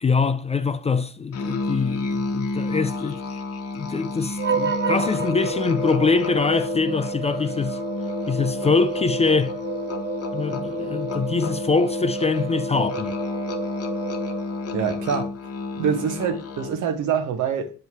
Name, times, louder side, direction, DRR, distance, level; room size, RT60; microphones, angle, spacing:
voice 1, 0.0-3.2 3.7-7.8 8.3-9.5 10.3-13.2, left 4 dB, 20° left, 0.3 m, -23 dB
Musical instrument, 1.3-16.9, left 4 dB, 50° left, 0.9 m, -31 dB
sound 1, 4.4-14.9, right 5 dB, 40° right, 0.8 m, -30 dB
voice 2, 14.7-15.3 15.7-17.7, right 7 dB, 75° right, 0.9 m, -25 dB
7.7 x 2.7 x 4.5 m
cardioid pair, 90°, 30 cm